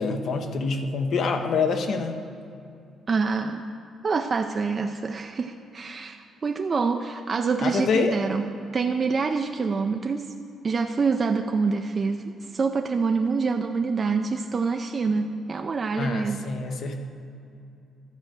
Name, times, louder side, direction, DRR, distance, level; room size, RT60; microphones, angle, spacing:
voice 1, 0.0-2.2 7.6-8.1 16.0-17.1, left 4 dB, 65° left, 5 dB, 0.9 m, -26 dB
voice 2, 3.1-3.6 4.0-8.5 8.7-10.3 10.6-16.4, right 4 dB, 40° right, 5 dB, 0.4 m, -26 dB
12.0 x 4.4 x 7.4 m, 2.5 s
cardioid pair, 90°, 0 cm